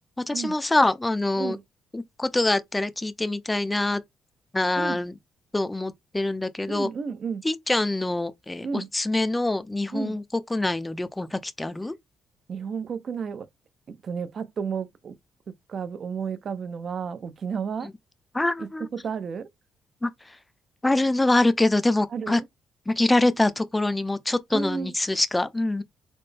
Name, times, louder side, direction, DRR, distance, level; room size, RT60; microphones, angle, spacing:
voice 1, 0.3-1.6 1.9-4.0 4.5-5.1 5.5-6.9 7.4-10.2 10.5-11.9 18.3-18.9 20.0-20.4 20.8-22.4 22.9-25.8, left 2 dB, 15° left, 0.5 m, -24 dB
voice 2, 6.7-7.4 8.6-8.9 9.9-10.2 12.5-13.5 13.9-15.1 15.7-17.9 18.6-19.5 22.1-22.5 24.5-24.9, right 6 dB, 50° right, 0.6 m, -32 dB
4.2 x 2.1 x 3.3 m
cardioid pair, 90°, 0 cm